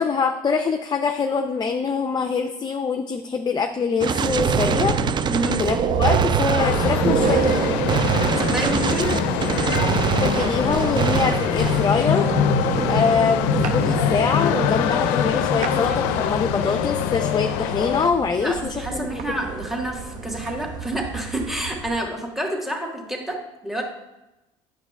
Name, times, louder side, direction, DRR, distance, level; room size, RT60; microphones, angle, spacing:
voice 1, 0.0-5.0 5.6-7.5 10.2-12.3 12.9-19.2, left 5 dB, 25° left, 6 dB, 0.5 m, -24 dB
Gunshot gunfire, 4.0-12.0, right 7 dB, 30° right, 0.4 m, -25 dB
sound 1, 4.3-22.0, right 4 dB, 55° right, 0.8 m, -28 dB
sound 2, 6.6-18.1, left 10 dB, 80° left, 0.4 m, -24 dB
voice 2, 8.4-9.1 18.4-23.8, right 1 dB, ahead, 0 dB, 1.6 m, -28 dB
8.6 x 6.3 x 2.3 m, 0.96 s
supercardioid pair, 80°, 15 cm